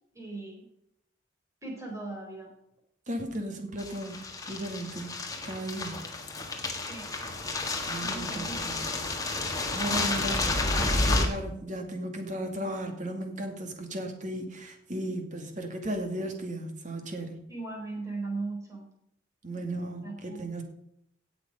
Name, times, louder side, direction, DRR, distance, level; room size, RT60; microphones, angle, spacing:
voice 1, 0.1-0.6 1.6-2.5 6.9-7.1 8.0-8.7 17.5-18.9 20.0-20.5, right 3 dB, 15° right, 0 dB, 4.4 m, -38 dB
voice 2, 3.1-4.2 4.5-5.1 5.4-6.0 7.9-8.8 9.4-17.4 19.4-20.6, right 1 dB, 40° right, 4 dB, 2.3 m, -35 dB
sound 1, 3.8-11.3, left 2 dB, 20° left, 1.7 m, -30 dB
17.5 x 7.0 x 5.3 m, 0.75 s
head